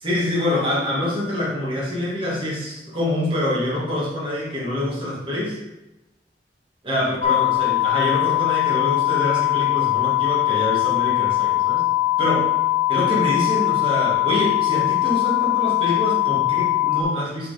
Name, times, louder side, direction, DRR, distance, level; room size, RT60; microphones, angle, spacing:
voice 1, 0.0-5.6 6.8-11.9 12.2-12.5 12.9-17.5, left 1 dB, 30° right, -6 dB, 2.0 m, -25 dB
sound 1, 7.2-17.0, left 17 dB, 45° left, 0.8 m, -21 dB
6.4 x 3.9 x 4.3 m, 0.97 s
head